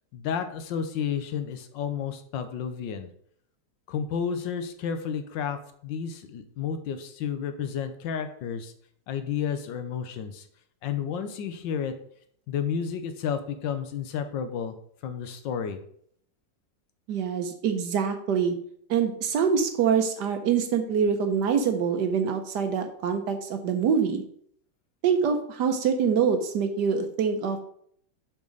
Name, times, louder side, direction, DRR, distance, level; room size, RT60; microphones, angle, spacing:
voice 1, 0.1-3.1 3.9-5.6 5.8-8.7 9.1-10.5 10.8-11.9 12.5-14.7 15.0-15.8, left 7 dB, 70° left, 9 dB, 1.3 m, -31 dB
voice 2, 17.1-18.5 18.9-24.2 25.0-27.6, right 6 dB, 65° right, 7 dB, 1.1 m, -25 dB
6.4 x 5.9 x 3.9 m, 0.64 s
omnidirectional pair, 2.4 m